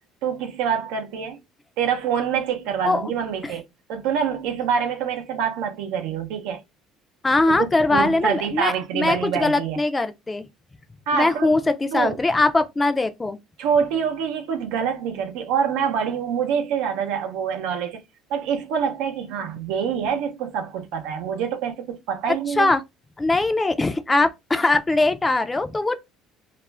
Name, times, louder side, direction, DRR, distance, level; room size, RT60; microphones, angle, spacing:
voice 1, 0.2-1.4 1.8-3.6 3.9-6.6 7.5-9.8 11.1-11.5 11.9-12.2 13.6-18.0 18.3-22.7, right 7 dB, 85° right, 0.6 m, -26 dB
voice 2, 7.2-10.5 11.1-13.4 22.6-22.8 23.2-25.9, left 2 dB, 15° left, 0.4 m, -21 dB
2.4 x 2.0 x 3.2 m
cardioid pair, 110°, 0 cm